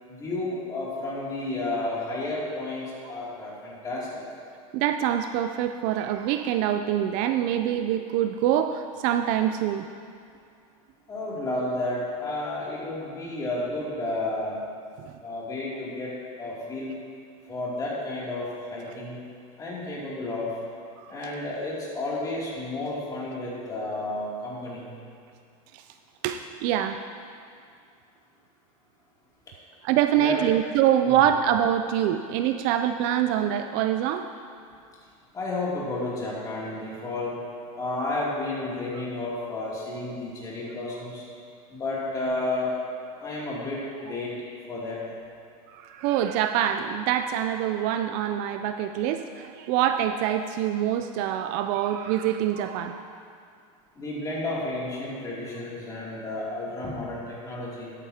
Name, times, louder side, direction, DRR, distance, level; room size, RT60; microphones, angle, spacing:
voice 1, 0.1-4.1 11.1-14.6 15.2-16.9 17.5-19.2 19.6-20.5 21.1-24.9 30.1-30.4 31.0-31.2 35.3-37.4 37.7-41.2 41.7-42.7 43.2-44.3 44.7-45.0 54.0-57.9, left 2 dB, 20° left, -6 dB, 2.8 m, -31 dB
voice 2, 4.7-9.9 21.0-21.1 25.7-25.8 26.2-27.0 29.8-34.3 45.7-53.0, right 10 dB, 45° right, 8 dB, 0.4 m, -25 dB
13.5 x 11.0 x 2.9 m, 2.3 s
supercardioid pair, 145°, 18 cm